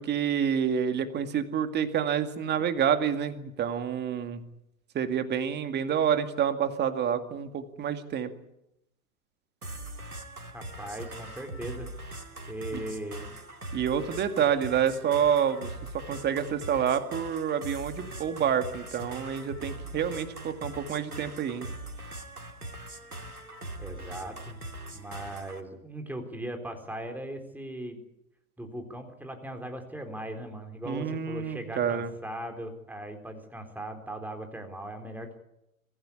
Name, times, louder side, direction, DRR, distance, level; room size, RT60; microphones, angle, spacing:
voice 1, 0.0-4.4 4.9-8.3 12.7-12.8 13.7-15.7 16.1-21.7 30.8-32.1, right 8 dB, 25° right, 9 dB, 2.2 m, -28 dB
sound 1, 9.6-25.6, right 1 dB, 90° right, 2.5 m, -41 dB
voice 2, 10.5-11.9 12.5-13.4 23.8-24.6 24.9-28.0 28.6-35.4, right 1 dB, 5° right, 5 dB, 3.8 m, -39 dB
24.5 x 15.5 x 9.8 m, 0.84 s
figure-of-eight pair, 100°, 43 cm